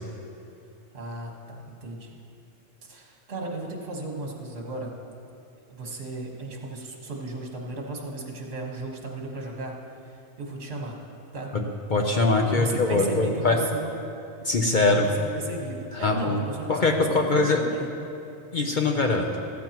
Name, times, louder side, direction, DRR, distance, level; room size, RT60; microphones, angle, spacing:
voice 1, 0.9-2.2 2.8-4.9 5.7-9.7 10.1-11.0 11.3-11.5 12.5-13.9 15.2-17.9, right 2 dB, 55° right, -1 dB, 1.7 m, -35 dB
voice 2, 11.9-13.6 14.4-15.1 16.0-16.4 16.7-17.6 18.5-19.4, left 3 dB, 45° left, 2 dB, 0.8 m, -22 dB
14.5 x 14.0 x 3.0 m, 2.6 s
omnidirectional pair, 1.3 m